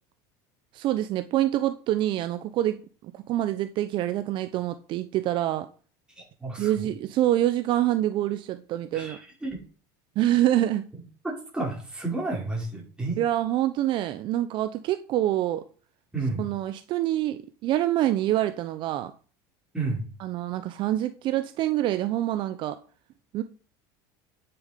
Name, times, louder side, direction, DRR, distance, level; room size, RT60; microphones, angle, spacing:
voice 1, 0.7-5.7 6.6-9.2 10.2-10.8 13.2-15.7 16.4-19.1 20.2-22.8 23.3-23.4, right 13 dB, 50° right, 0.7 m, -26 dB
voice 2, 6.2-6.9 8.9-9.6 11.2-13.2 16.1-16.4 19.7-20.1, right 3 dB, 10° right, 5.1 m, -31 dB
9.0 x 6.9 x 5.1 m
supercardioid pair, 115°, 10 cm